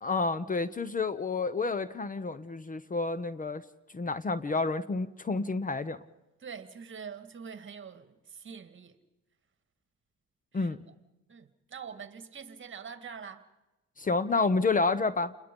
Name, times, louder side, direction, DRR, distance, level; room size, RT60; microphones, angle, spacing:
voice 1, 0.0-3.6 3.9-6.0 10.5-10.9 14.0-15.3, left 3 dB, 25° left, 0.9 m, -29 dB
voice 2, 6.4-9.0 10.5-10.9 11.3-13.4, right 6 dB, 40° right, 1.9 m, -45 dB
29.0 x 21.5 x 5.4 m
cardioid pair, 90°, 30 cm